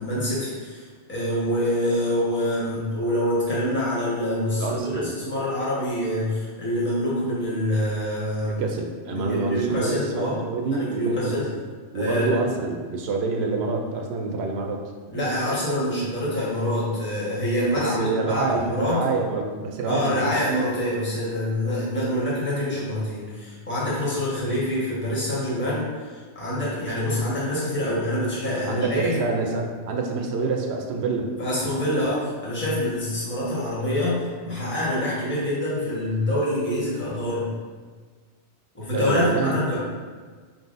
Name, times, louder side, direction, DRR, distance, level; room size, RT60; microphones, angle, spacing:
voice 1, 0.0-8.6 9.1-10.4 10.7-11.5 11.9-12.4 15.1-19.1 19.8-29.2 31.4-37.4 38.7-39.8, left 1 dB, 10° left, -8 dB, 1.1 m, -26 dB
voice 2, 4.6-5.2 8.4-11.5 11.9-14.9 17.8-20.4 28.6-31.3 31.6-32.1 38.9-39.5, right 4 dB, 70° right, 2 dB, 0.8 m, -27 dB
4.4 x 3.9 x 2.5 m, 1.5 s
omnidirectional pair, 1.2 m